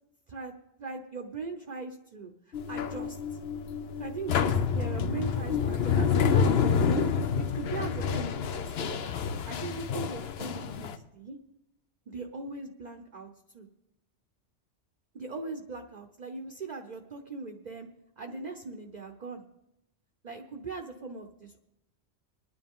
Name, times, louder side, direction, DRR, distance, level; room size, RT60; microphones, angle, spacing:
voice 1, 0.8-3.2 4.0-9.2 9.5-11.4 12.1-13.7 15.1-17.9 18.2-19.4 20.2-21.6, right 4 dB, 45° right, 5 dB, 0.8 m, -40 dB
sound 1, 2.5-11.0, left 6 dB, 65° left, 0.9 m, -28 dB
23.0 x 10.0 x 3.7 m, 0.90 s
omnidirectional pair, 1.2 m